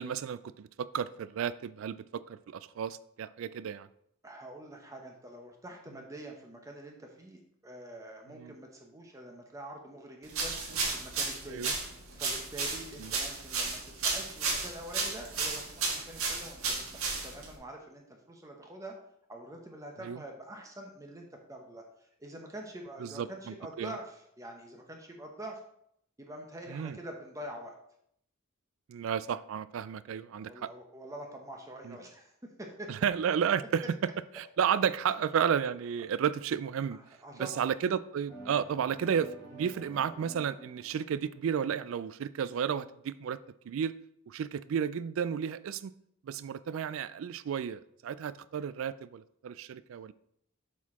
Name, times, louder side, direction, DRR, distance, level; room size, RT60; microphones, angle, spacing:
voice 1, 0.0-3.9 8.3-8.5 11.5-11.7 13.0-13.1 20.0-20.2 23.0-23.9 26.7-27.0 28.9-30.7 31.8-32.0 32.9-33.8 34.4-37.0 37.4-43.4 43.7-43.9 44.3-45.9 46.2-50.1, right 8 dB, 65° right, 17 dB, 0.3 m, -32 dB
voice 2, 4.2-10.5 10.9-11.7 12.2-18.9 19.3-25.6 26.2-27.7 30.4-32.9 36.9-37.7, right 1 dB, 15° right, 2 dB, 0.7 m, -46 dB
sound 1, 10.3-17.5, right 4 dB, 85° right, 1.6 m, -33 dB
sound 2, 38.3-42.1, right 2 dB, 15° left, 1.3 m, -49 dB
7.2 x 4.2 x 4.2 m, 0.73 s
head